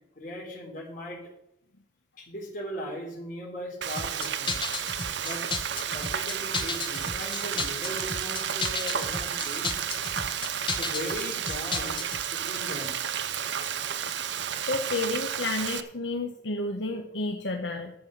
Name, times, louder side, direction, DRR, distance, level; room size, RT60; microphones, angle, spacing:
voice 1, 0.2-1.2 2.2-4.6 5.1-5.4 5.9-9.7 10.7-13.0, equal, 45° left, -1 dB, 4.0 m, -38 dB
Frying (food), 3.8-15.8, right 8 dB, 65° right, 0.7 m, -32 dB
sound 1, 4.0-12.2, left 4 dB, 25° left, 0.9 m, -34 dB
voice 2, 14.7-17.9, left 2 dB, 75° left, 3 dB, 1.1 m, -31 dB
11.5 x 7.7 x 6.6 m, 0.81 s
head